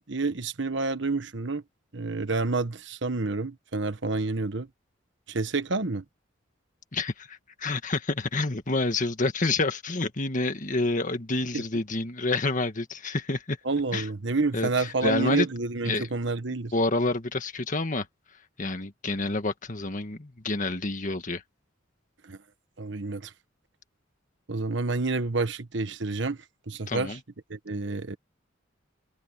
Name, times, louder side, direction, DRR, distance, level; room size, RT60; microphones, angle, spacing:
voice 1, 0.0-1.6 1.9-4.7 5.3-6.0 11.5-11.6 13.6-16.7 22.2-22.4 22.8-23.3 24.5-26.4 26.7-27.2 27.5-28.2, right 3 dB, 65° right, 1.3 m, -29 dB
voice 2, 6.9-13.6 13.9-14.1 14.5-15.5 15.9-16.1 16.7-18.1 18.6-21.4 26.9-27.2, left 2 dB, 40° left, 1.7 m, -28 dB
head